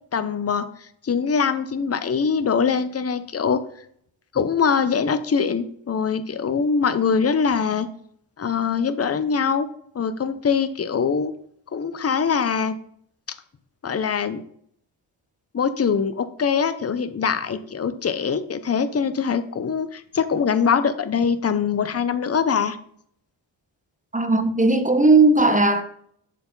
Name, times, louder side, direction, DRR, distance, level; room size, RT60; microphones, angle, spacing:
voice 1, 0.1-3.6 4.3-7.9 8.4-9.7 9.9-11.3 11.7-12.8 13.8-14.4 15.5-22.8, left 6 dB, 30° left, 0.8 m, -23 dB
voice 2, 24.1-25.8, right 3 dB, 15° right, 0.8 m, -17 dB
7.9 x 6.7 x 3.9 m
cardioid pair, 80°, 49 cm